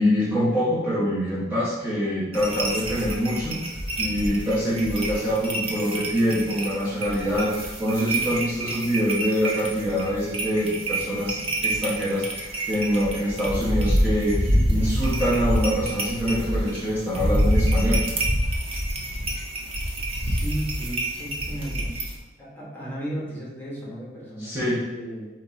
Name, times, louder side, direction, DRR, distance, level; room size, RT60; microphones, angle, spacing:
voice 1, 0.0-3.6 4.0-18.0 24.4-24.8, equal, 10° right, -10 dB, 1.0 m, -25 dB
sound 1, 2.3-22.1, right 1 dB, 30° right, 0.7 m, -27 dB
voice 2, 20.1-22.1 22.4-25.3, right 1 dB, 10° left, -6 dB, 1.3 m, -35 dB
4.1 x 3.0 x 4.0 m, 1.1 s
head